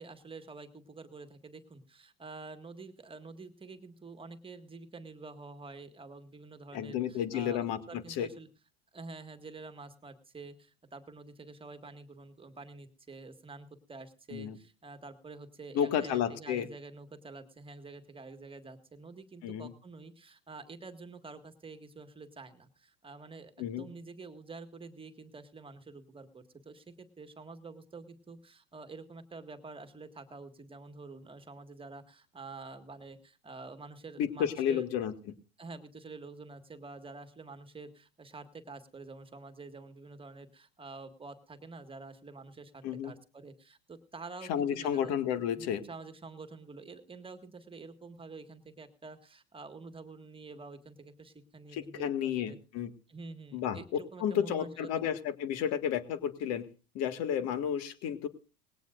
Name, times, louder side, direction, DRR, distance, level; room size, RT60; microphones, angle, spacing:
voice 1, 0.0-8.5 8.9-34.8 35.6-45.1 45.6-52.6 53.1-55.1, right 3 dB, 15° right, 8 dB, 1.8 m, -48 dB
voice 2, 6.7-8.3 14.3-14.6 15.7-16.7 19.4-19.7 23.6-23.9 34.2-35.1 42.8-43.1 44.5-45.8 51.7-52.9 53.5-56.7 56.9-58.3, left 9 dB, 55° left, 10 dB, 1.9 m, -32 dB
20.0 x 17.5 x 2.5 m, 0.33 s
hypercardioid pair, 90°, 31 cm